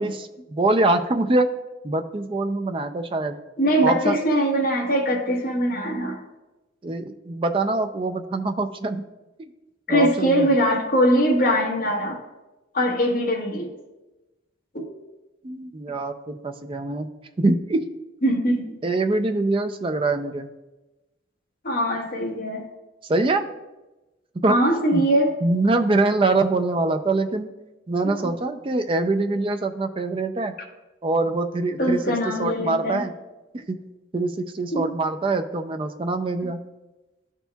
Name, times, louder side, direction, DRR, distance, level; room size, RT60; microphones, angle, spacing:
voice 1, 0.0-1.5 1.8-3.3 3.8-4.2 6.8-9.0 9.4-9.5 9.9-10.5 15.4-17.1 17.4-17.8 18.8-20.5 23.0-23.4 24.4-25.0 25.4-27.5 27.9-30.5 31.0-33.1 33.7-33.8 34.1-36.6, right 2 dB, 25° right, 7 dB, 0.4 m, -24 dB
voice 2, 3.6-6.2 9.9-12.2 12.7-13.7 18.2-18.7 21.6-22.6 24.5-25.3 28.0-28.3 31.8-33.0 34.7-34.9, equal, 45° left, 0 dB, 1.2 m, -22 dB
12.5 x 4.4 x 2.3 m, 1.1 s
head